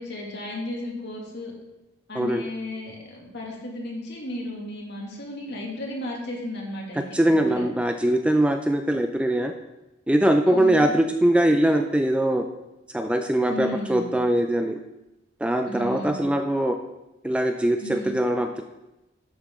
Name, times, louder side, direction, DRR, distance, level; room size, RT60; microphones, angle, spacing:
voice 1, 0.0-1.5 2.1-7.6 10.5-10.9 13.5-14.1 15.7-16.2 17.8-18.2, left 1 dB, 55° left, -2 dB, 2.2 m, -34 dB
voice 2, 7.1-9.5 10.1-12.4 12.9-14.8 15.4-16.8 17.2-18.6, right 1 dB, 5° right, 6 dB, 0.3 m, -22 dB
11.0 x 5.7 x 3.6 m, 0.96 s
head